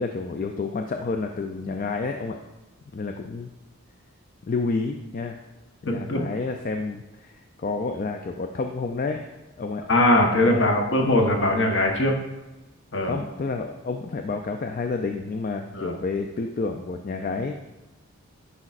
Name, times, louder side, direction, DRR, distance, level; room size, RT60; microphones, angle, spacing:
voice 1, 0.0-2.4 2.9-3.5 4.4-5.4 5.8-9.2 9.6-9.8 10.4-10.7 13.0-17.5, left 4 dB, 35° left, 4 dB, 0.3 m, -29 dB
voice 2, 5.9-6.2 9.9-12.2 12.9-13.1 15.7-16.0, left 1 dB, 55° left, 2 dB, 1.0 m, -21 dB
9.8 x 5.3 x 2.4 m, 1.1 s
head